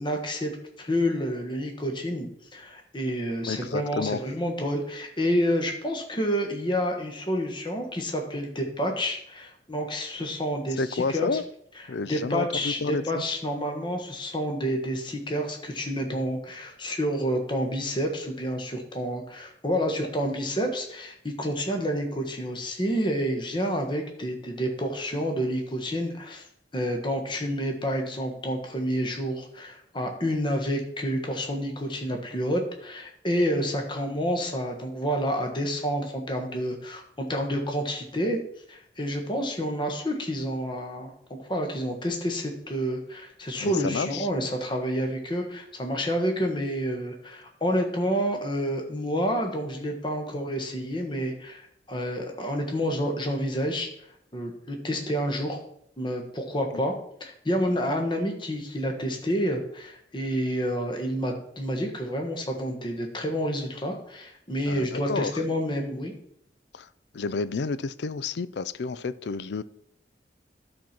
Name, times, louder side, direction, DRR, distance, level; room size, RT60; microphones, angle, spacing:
voice 1, 0.0-11.4 12.1-26.5 26.7-38.4 38.7-53.9 54.3-55.6 56.0-56.9 57.2-66.1, equal, 25° left, 3 dB, 1.4 m, -29 dB
voice 2, 3.5-4.2 10.8-11.4 11.9-13.2 43.6-44.3 64.7-65.4 66.7-66.9 67.1-69.6, left 4 dB, 70° left, 16 dB, 0.4 m, -30 dB
12.0 x 4.4 x 5.9 m, 0.70 s
head